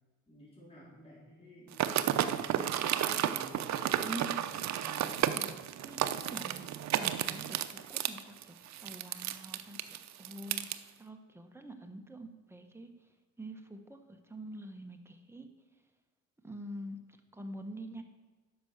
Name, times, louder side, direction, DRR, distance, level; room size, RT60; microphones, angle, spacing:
voice 1, 0.3-2.5 3.0-5.5, equal, 20° left, -6 dB, 3.8 m, -53 dB
sound 1, 1.7-10.8, right 11 dB, 65° right, 0.6 m, -32 dB
voice 2, 4.0-4.4 5.3-5.5 5.8-6.6 6.9-7.6 7.9-10.7 11.0-12.9 13.4-15.5 16.4-17.0 17.3-18.0, right 1 dB, 10° right, 4 dB, 1.3 m, -45 dB
10.0 x 6.3 x 6.6 m, 1.2 s
cardioid pair, 90°, 30 cm